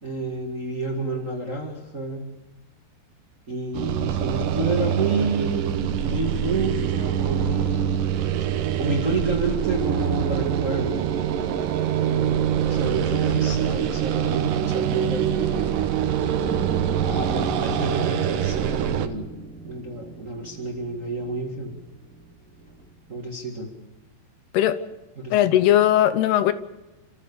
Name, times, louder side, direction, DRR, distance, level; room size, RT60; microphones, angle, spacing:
voice 1, 0.0-2.3 3.5-8.1 8.8-11.2 12.0-15.8 17.0-19.3 19.6-21.8 23.1-23.7 25.2-25.3, right 2 dB, 30° right, 1.5 m, -29 dB
sound 1, 3.7-19.1, right 10 dB, 70° right, 2.3 m, -24 dB
sound 2, 16.4-23.0, right 3 dB, 5° left, 1.9 m, -38 dB
voice 2, 25.3-26.5, left 12 dB, 75° left, 2.7 m, -18 dB
29.5 x 15.0 x 6.9 m
omnidirectional pair, 4.9 m